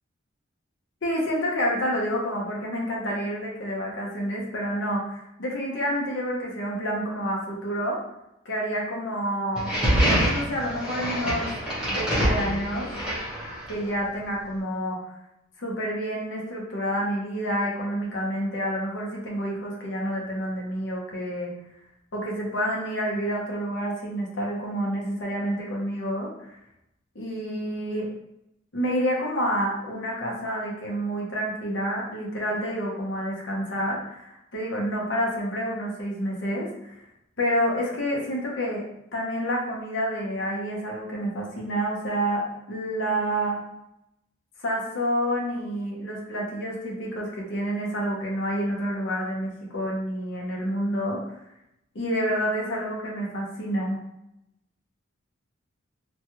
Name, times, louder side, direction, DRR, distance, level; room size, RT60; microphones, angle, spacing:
voice 1, 1.0-8.0 8.4-9.7 10.2-11.5 11.9-12.9 13.7-15.1 15.6-21.5 22.1-26.3 27.1-28.1 28.7-37.0 37.4-38.8 39.1-43.6 44.6-51.2 51.9-54.0, equal, 65° left, -3 dB, 0.7 m, -28 dB
sound 1, 9.5-13.9, equal, 5° right, 0.9 m, -25 dB
3.0 x 2.2 x 2.8 m, 0.83 s
head